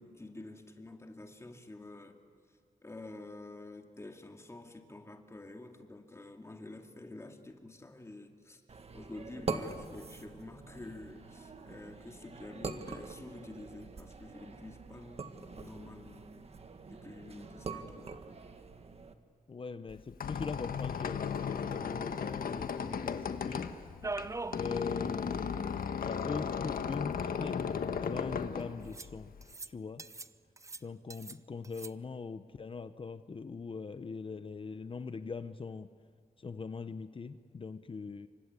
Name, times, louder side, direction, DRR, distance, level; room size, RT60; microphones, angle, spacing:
voice 1, 0.0-2.2 2.8-8.6 8.9-15.3 15.5-16.3 16.9-18.1, left 2 dB, 20° left, 4 dB, 2.5 m, -48 dB
sound 1, 8.7-19.1, right 4 dB, 45° right, 1.7 m, -44 dB
voice 2, 19.5-23.7 24.6-25.7 26.0-29.3 29.7-30.0 30.8-35.9 36.4-38.3, left 4 dB, 40° left, 11 dB, 0.8 m, -41 dB
Squeak, 19.9-29.5, left 6 dB, 85° left, 1.4 m, -36 dB
sound 2, 24.0-24.7 25.0-25.1 25.4-25.5 26.5-26.6 27.4-28.0 28.9-29.1 29.4-29.7 30.0-30.3 30.6-31.4 31.6-31.9, right 3 dB, 20° right, 0.6 m, -41 dB
29.0 x 25.0 x 8.3 m, 2.1 s
wide cardioid pair, 125°, 15 cm